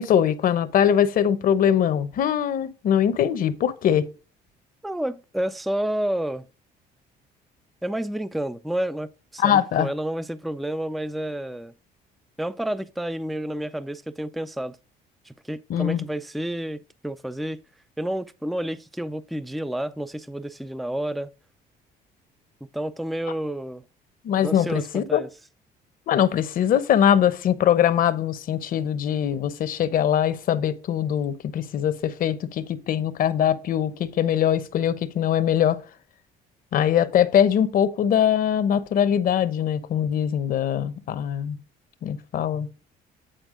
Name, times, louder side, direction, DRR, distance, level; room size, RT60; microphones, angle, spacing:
voice 1, 0.0-4.1 9.4-9.9 15.7-16.1 24.2-25.2 26.1-35.8 36.7-41.6 42.0-42.7, left 9 dB, 55° left, 0.8 m, -22 dB
voice 2, 4.8-6.5 7.8-11.7 12.4-14.8 15.2-17.6 18.0-21.3 22.7-23.8 24.4-25.3, right 1 dB, ahead, 0.4 m, -30 dB
9.1 x 4.4 x 3.8 m
cardioid pair, 110°, 17 cm